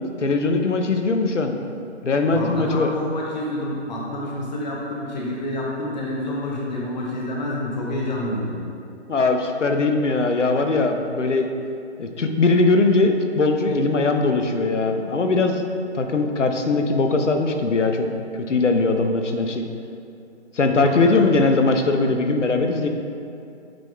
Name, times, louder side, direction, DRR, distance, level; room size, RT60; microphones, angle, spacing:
voice 1, 0.2-1.5 2.0-2.9 9.1-11.5 12.0-15.6 15.9-18.1 18.3-19.6 20.5-22.9, left 3 dB, 80° left, 5 dB, 0.8 m, -20 dB
voice 2, 2.3-8.6 20.8-21.3, left 1 dB, 35° left, -3 dB, 1.0 m, -28 dB
8.7 x 3.7 x 3.3 m, 2.6 s
figure-of-eight pair, 145°, 36 cm